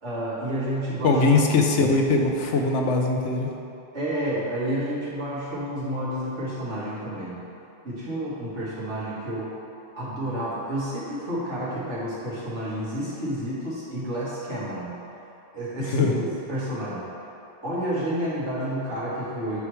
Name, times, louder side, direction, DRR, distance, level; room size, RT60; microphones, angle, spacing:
voice 1, 0.0-1.2 2.4-2.5 3.9-7.4 7.8-9.5 9.9-15.0 15.5-17.0 17.6-19.6, right 1 dB, 80° right, -9 dB, 2.1 m, -30 dB
voice 2, 1.0-3.5 15.8-16.2, left 3 dB, 85° left, 2 dB, 1.0 m, -21 dB
9.0 x 3.1 x 4.7 m, 2.8 s
omnidirectional pair, 1.2 m